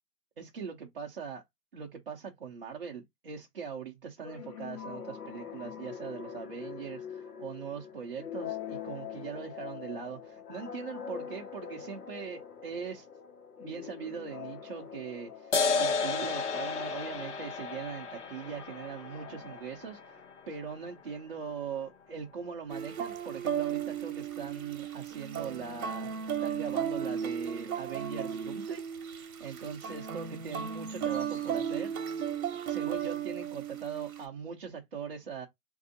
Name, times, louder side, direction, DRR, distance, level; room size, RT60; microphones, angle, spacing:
voice 1, 0.4-1.4 1.7-13.1 13.6-26.1 26.4-32.2 32.7-35.5, right 6 dB, 40° right, 0.5 m, -41 dB
sound 1, 4.2-20.6, left 8 dB, 70° left, 1.1 m, -44 dB
sound 2, 15.5-22.5, left 4 dB, 45° left, 0.8 m, -34 dB
sound 3, 22.7-34.2, right 8 dB, 60° right, 0.9 m, -35 dB
4.1 x 2.6 x 2.5 m
hypercardioid pair, 160°, 47 cm